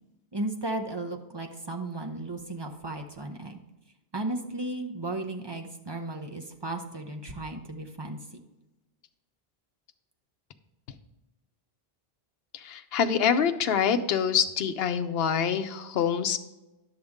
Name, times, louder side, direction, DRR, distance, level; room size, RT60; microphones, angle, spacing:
voice 1, 0.3-3.6 4.1-8.2, right 2 dB, 30° right, 4 dB, 0.6 m, -35 dB
voice 2, 12.5-16.4, left 7 dB, 75° left, 8 dB, 0.8 m, -25 dB
10.5 x 6.6 x 3.6 m, 1.0 s
omnidirectional pair, 1.1 m